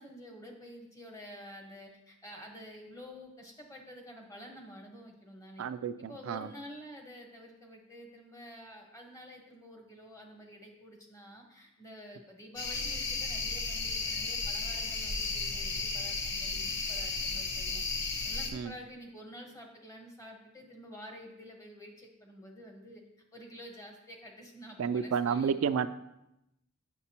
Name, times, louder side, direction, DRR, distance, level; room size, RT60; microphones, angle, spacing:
voice 1, 0.0-5.7 6.0-17.8 18.2-23.0 23.3-25.5, equal, 15° left, 2 dB, 1.1 m, -49 dB
voice 2, 5.6-6.5 18.5-18.7 24.8-25.9, right 6 dB, 80° right, 12 dB, 0.3 m, -31 dB
sound 1, 12.6-18.5, left 3 dB, 60° left, 0.9 m, -34 dB
8.1 x 6.7 x 2.8 m, 0.87 s
head